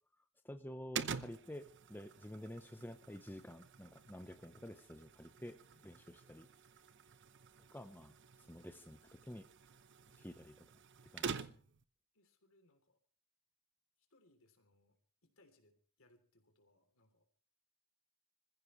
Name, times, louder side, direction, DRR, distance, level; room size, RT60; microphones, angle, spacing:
voice 1, 0.4-5.6 5.8-6.5 7.7-8.1 8.5-9.5 10.2-10.5 11.1-11.4, left 1 dB, 10° left, 7 dB, 0.8 m, -50 dB
sound 1, 0.9-11.8, right 6 dB, 55° right, 0.8 m, -48 dB
voice 2, 5.7-6.3 11.4-11.7 12.1-13.0 14.0-15.0 15.2-17.3, left 1 dB, 65° left, 6 dB, 3.3 m, -72 dB
26.0 x 15.0 x 3.2 m, 0.42 s
head